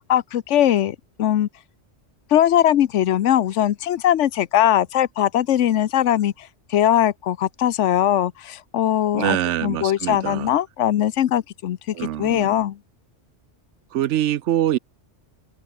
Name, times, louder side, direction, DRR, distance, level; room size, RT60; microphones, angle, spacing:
voice 1, 0.1-1.5 2.3-12.8, left 11 dB, 90° left, 1.1 m, -20 dB
voice 2, 9.1-10.5 11.9-12.5 13.9-14.8, right 12 dB, 80° right, 0.9 m, -24 dB
open air
omnidirectional pair, 1.2 m